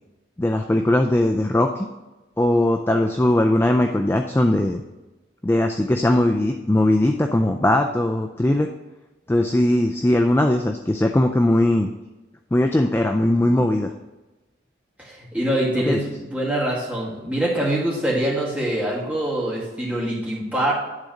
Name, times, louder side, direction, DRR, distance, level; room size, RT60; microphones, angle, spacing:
voice 1, 0.4-1.9 2.4-4.8 5.4-8.7 9.3-11.9 12.5-13.9 15.9-16.0, left 1 dB, 10° left, 4 dB, 0.3 m, -19 dB
voice 2, 15.0-20.7, right 1 dB, 5° right, -6 dB, 2.2 m, -24 dB
10.5 x 3.8 x 6.4 m, 1.1 s
head